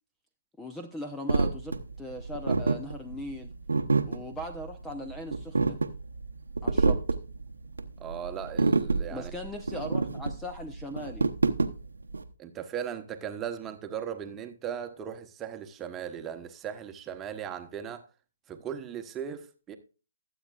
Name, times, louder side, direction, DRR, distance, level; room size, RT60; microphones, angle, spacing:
voice 1, 0.6-3.5 4.0-5.8 6.6-7.0 9.1-11.3, left 1 dB, 5° left, 0.7 m, -39 dB
sound 1, 1.3-12.2, right 3 dB, 85° right, 1.0 m, -28 dB
voice 2, 8.0-9.3 12.4-18.0 18.5-19.8, right 8 dB, 15° right, 1.1 m, -38 dB
21.0 x 8.1 x 2.4 m
figure-of-eight pair, 140°, 0 cm